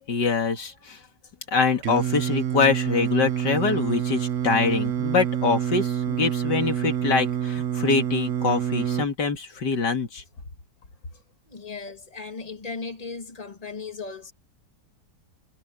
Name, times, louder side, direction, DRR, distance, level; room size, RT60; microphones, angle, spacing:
voice 1, 0.1-1.0 1.5-10.2, left 4 dB, 75° left, 2.8 m, -24 dB
Singing, 1.8-9.1, right 10 dB, 55° right, 1.0 m, -27 dB
voice 2, 11.5-14.3, left 4 dB, 20° left, 2.6 m, -36 dB
omnidirectional pair, 1.8 m